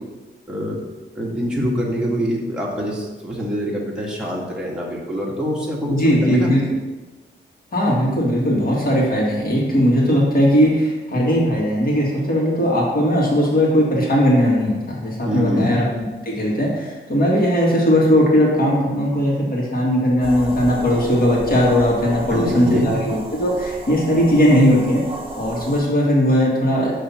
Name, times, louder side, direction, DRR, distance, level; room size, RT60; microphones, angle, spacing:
voice 1, 1.1-6.5 15.2-15.7 22.3-22.9, equal, 5° right, -4 dB, 1.3 m, -25 dB
voice 2, 5.9-6.6 7.7-15.8 16.2-25.0 25.3-26.9, equal, 50° left, -4 dB, 2.0 m, -18 dB
sound 1, 20.2-25.8, right 1 dB, 30° right, 1.0 m, -33 dB
5.7 x 3.3 x 5.7 m, 1.2 s
cardioid pair, 100°, 19 cm